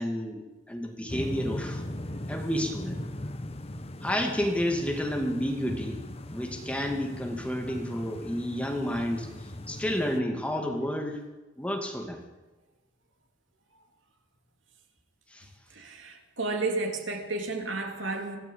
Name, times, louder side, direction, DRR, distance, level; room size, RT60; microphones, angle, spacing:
voice 1, 0.0-1.8 2.3-3.0 4.0-6.0 6.3-9.3 9.7-11.2 11.6-12.2 15.3-15.5, equal, 5° left, 2 dB, 2.3 m, -30 dB
sound 1, 1.1-10.2, left 1 dB, 30° left, 1.3 m, -39 dB
voice 2, 15.7-18.4, right 3 dB, 70° right, 3 dB, 3.5 m, -32 dB
26.0 x 16.5 x 8.7 m, 1.2 s
head